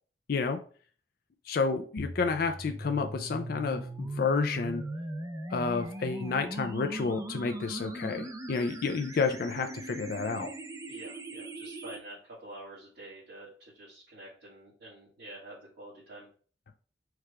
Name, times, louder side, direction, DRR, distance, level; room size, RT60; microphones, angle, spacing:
voice 1, 1.5-4.8 5.5-10.5, left 4 dB, 55° left, 6 dB, 0.4 m, -30 dB
sound 1, 2.0-12.0, right 2 dB, 20° right, 0.5 m, -39 dB
voice 2, 10.9-16.3, right 1 dB, 55° right, -8 dB, 1.6 m, -48 dB
4.7 x 2.3 x 4.7 m, 0.43 s
head